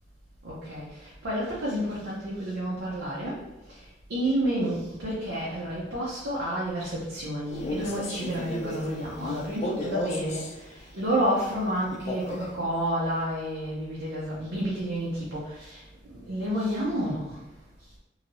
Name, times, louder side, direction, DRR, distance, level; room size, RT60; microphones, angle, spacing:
voice 1, 0.4-3.5 4.1-17.4, right 1 dB, 80° right, -7 dB, 0.7 m, -30 dB
Male speech man speaking, 7.4-10.6 11.9-12.6, left 1 dB, 40° left, 0.4 m, -34 dB
3.1 x 2.8 x 2.6 m, 1.0 s
head